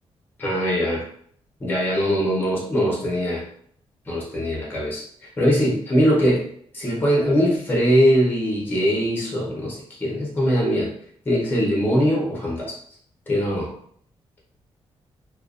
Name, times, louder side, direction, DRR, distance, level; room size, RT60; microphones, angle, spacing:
voice 1, 0.4-1.1 1.6-3.5 4.1-5.0 5.4-6.4 6.7-10.9 11.3-12.8 13.3-13.7, equal, 20° left, -4 dB, 0.7 m, -21 dB
2.4 x 2.1 x 2.4 m, 0.63 s
wide cardioid pair, 140°, 11 cm